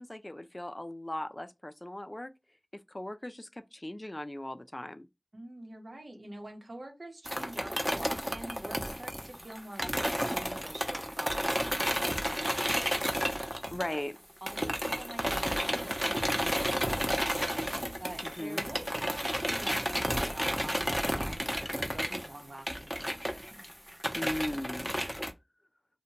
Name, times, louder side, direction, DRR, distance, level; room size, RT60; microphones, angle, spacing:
voice 1, 0.0-2.3 2.9-5.1 13.7-14.2 18.4-18.6 24.1-24.9, left 1 dB, 35° left, 0.3 m, -38 dB
voice 2, 5.3-13.3 14.4-23.7, right 1 dB, 90° right, 0.8 m, -46 dB
sound 1, 7.3-14.2 14.5-25.3, equal, 5° right, 0.6 m, -32 dB
2.7 x 2.1 x 2.8 m
wide cardioid pair, 45°, 0 cm